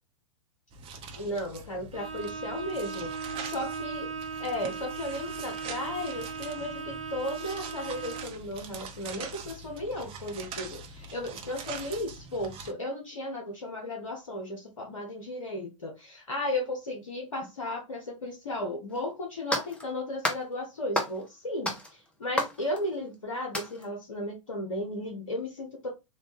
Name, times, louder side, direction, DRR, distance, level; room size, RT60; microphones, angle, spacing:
sound 1, 0.7-12.7, right 4 dB, 35° right, 0.7 m, -43 dB
voice 1, 1.2-3.1 3.4-4.1 4.4-25.9, left 1 dB, 80° left, 1 dB, 1.0 m, -35 dB
Bowed string instrument, 1.9-8.4, right 5 dB, 85° right, 0.7 m, -38 dB
sound 2, 18.9-19.0 19.5-19.9 20.2-20.5 20.9-21.3 21.7-23.1 23.5-23.9, left 1 dB, 5° left, 0.8 m, -32 dB
3.4 x 2.6 x 2.8 m, 0.24 s
hypercardioid pair, 100°, 16 cm